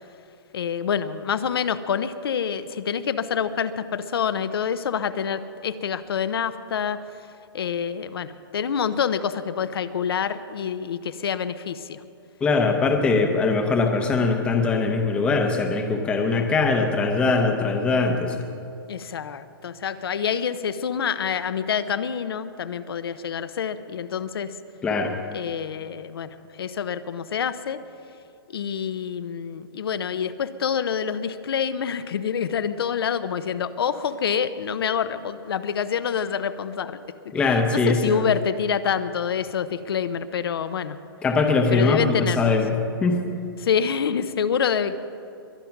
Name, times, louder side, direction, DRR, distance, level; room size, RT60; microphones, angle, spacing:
voice 1, 0.5-7.0 7.5-12.0 18.9-24.5 25.3-27.8 28.5-37.0 37.7-41.0 41.7-42.5 43.6-45.0, left 7 dB, 70° left, 12 dB, 0.8 m, -27 dB
voice 2, 12.4-18.5 24.8-25.2 37.3-38.2 41.2-42.8 43.0-43.2, left 3 dB, 10° left, 4 dB, 0.8 m, -21 dB
22.5 x 9.5 x 5.9 m, 2.5 s
hypercardioid pair, 170°, 13 cm